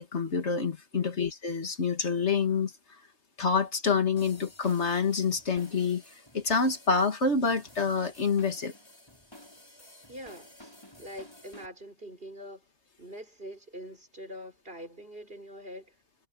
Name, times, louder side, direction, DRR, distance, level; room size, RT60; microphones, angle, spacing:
voice 1, 0.0-2.7 3.4-6.0 6.3-8.7, left 5 dB, 75° left, 2.3 m, -27 dB
sound 1, 4.2-11.7, left 1 dB, 20° left, 6.5 m, -52 dB
voice 2, 10.1-12.6 13.0-15.9, equal, 55° right, 5.2 m, -44 dB
omnidirectional pair, 1.2 m